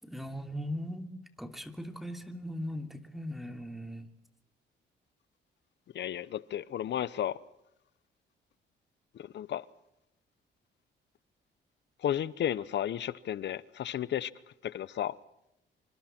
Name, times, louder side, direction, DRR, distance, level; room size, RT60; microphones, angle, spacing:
voice 1, 0.0-4.1, equal, ahead, 2.9 m, -39 dB
voice 2, 5.9-7.4 9.1-9.6 12.0-14.3 14.6-15.1, left 10 dB, 65° left, 1.0 m, -33 dB
26.5 x 25.5 x 4.5 m
cardioid pair, 90°, 20 cm